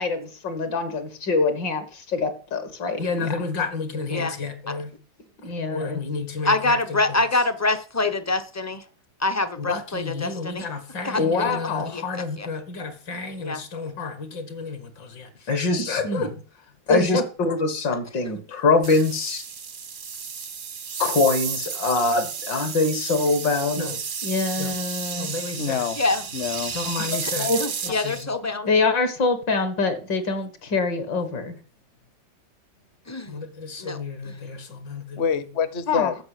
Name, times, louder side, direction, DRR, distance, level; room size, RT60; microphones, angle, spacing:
voice 1, 0.0-4.9 5.4-7.0 9.6-16.4 16.9-19.4 21.0-25.8 26.7-28.3 28.6-31.6 33.3-35.2 35.9-36.2, left 3 dB, 65° left, 2.3 m, -26 dB
voice 2, 6.4-8.8 9.2-10.7 11.0-11.6 11.9-12.5 13.4-13.6 26.0-26.2 27.2-27.3 27.6-28.7 33.1-33.4 33.8-34.0 34.2-34.4, left 2 dB, 25° left, 0.3 m, -25 dB
sound 1, 18.8-28.2, right 6 dB, 50° right, 0.6 m, -32 dB
voice 3, 25.6-26.0 26.3-26.7 35.2-36.2, left 7 dB, 45° left, 1.0 m, -26 dB
13.5 x 5.9 x 8.3 m
omnidirectional pair, 2.1 m